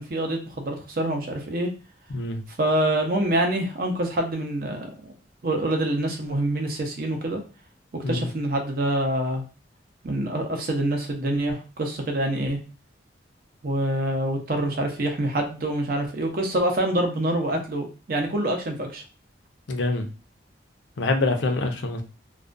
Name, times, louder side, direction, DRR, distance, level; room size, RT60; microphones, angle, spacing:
voice 1, 0.0-1.7 2.6-5.1 5.4-7.4 7.9-9.4 10.0-12.6 13.6-19.0, right 1 dB, 50° right, 0.6 m, -26 dB
voice 2, 19.7-20.1 21.0-22.0, left 2 dB, 75° left, 0.5 m, -25 dB
2.3 x 2.2 x 2.4 m
head